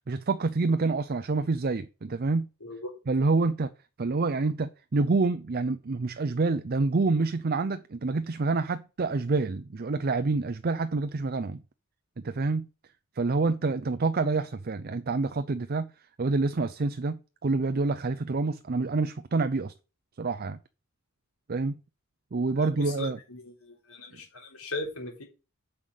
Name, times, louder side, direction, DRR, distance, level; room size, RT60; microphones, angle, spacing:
voice 1, 0.1-2.5 3.1-3.7 4.0-11.6 12.2-12.7 13.2-15.9 16.2-19.7 20.2-20.6 21.5-21.8 22.3-23.2, right 3 dB, 45° right, 0.5 m, -27 dB
voice 2, 23.0-25.2, left 2 dB, 80° left, 3.6 m, -38 dB
7.8 x 5.7 x 5.1 m
head